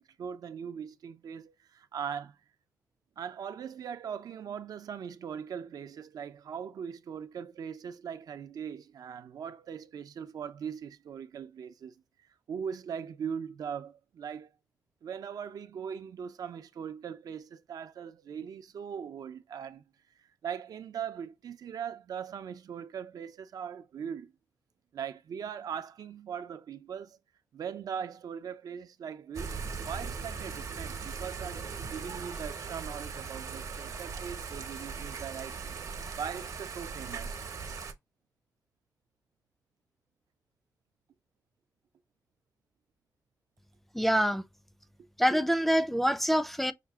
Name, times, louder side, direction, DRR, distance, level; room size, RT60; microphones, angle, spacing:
voice 1, 0.0-2.4 3.2-11.9 12.5-14.5 15.0-19.8 20.4-24.3 24.9-27.2 27.5-35.6 35.9-37.4, right 7 dB, 75° right, 0.5 m, -40 dB
Thunder / Rain, 29.3-37.9, right 5 dB, 60° right, 0.9 m, -39 dB
voice 2, 43.9-44.4 45.2-46.7, equal, 5° left, 0.4 m, -25 dB
5.9 x 2.2 x 3.5 m
wide cardioid pair, 130°, 6 cm